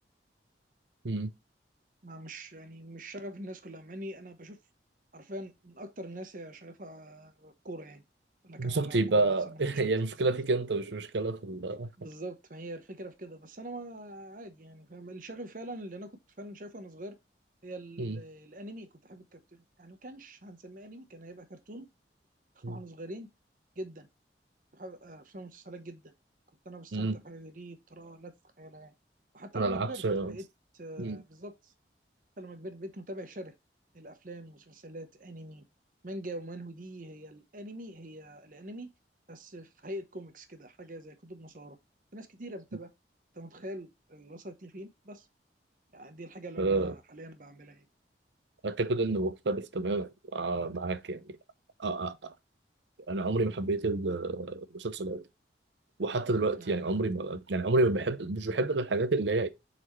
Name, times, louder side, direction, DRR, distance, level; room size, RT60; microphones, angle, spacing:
voice 1, 2.0-4.6 5.1-8.0 8.4-9.9 12.0-16.1 16.4-17.2 17.6-21.9 22.5-23.3 23.8-24.1 24.7-26.1 26.6-28.9 29.3-30.4 30.7-31.7 32.4-33.5 33.9-35.7 36.0-38.9 39.3-41.8 42.1-42.9 43.3-45.3 45.9-47.8 56.6-56.8, right 1 dB, 50° right, 1.0 m, -44 dB
voice 2, 8.6-11.9 18.0-18.2 22.6-22.8 26.9-27.2 29.5-30.4 31.0-31.2 46.6-46.9 48.6-51.4 51.8-52.3 53.1-55.2 56.0-59.5, right 2 dB, 90° right, 0.7 m, -29 dB
7.6 x 4.2 x 3.1 m
head